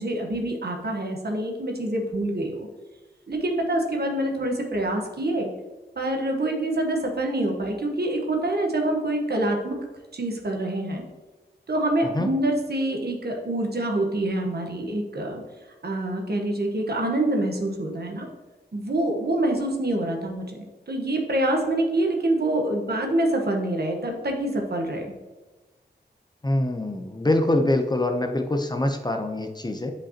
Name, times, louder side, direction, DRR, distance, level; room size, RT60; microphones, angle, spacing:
voice 1, 0.0-2.7 3.3-5.5 6.0-9.8 10.1-11.0 11.7-15.4 15.8-18.3 18.7-25.1, right 1 dB, 65° right, 2 dB, 1.1 m, -26 dB
voice 2, 26.4-29.9, left 1 dB, 25° left, 5 dB, 0.7 m, -24 dB
8.3 x 5.0 x 2.9 m, 1.2 s
wide cardioid pair, 80°, 18 cm